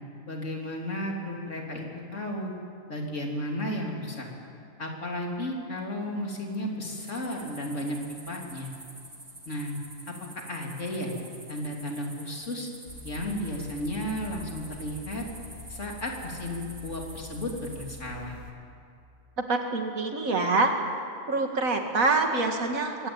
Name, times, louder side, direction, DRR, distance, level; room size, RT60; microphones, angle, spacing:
voice 1, 0.3-1.9 2.1-2.5 2.9-4.3 4.8-8.0 8.3-8.7 9.5-9.7 10.1-11.1 11.5-12.7 13.0-15.2 15.7-18.4, left 1 dB, 60° left, 0 dB, 3.6 m, -33 dB
sound 1, 7.0-18.0, right 1 dB, 30° right, 2.8 m, -48 dB
sound 2, 12.9-18.5, left 2 dB, 65° right, 2.5 m, -45 dB
voice 2, 19.5-20.7 21.3-23.1, right 3 dB, 90° right, 4 dB, 2.5 m, -25 dB
23.5 x 17.0 x 8.9 m, 2.4 s
omnidirectional pair, 1.4 m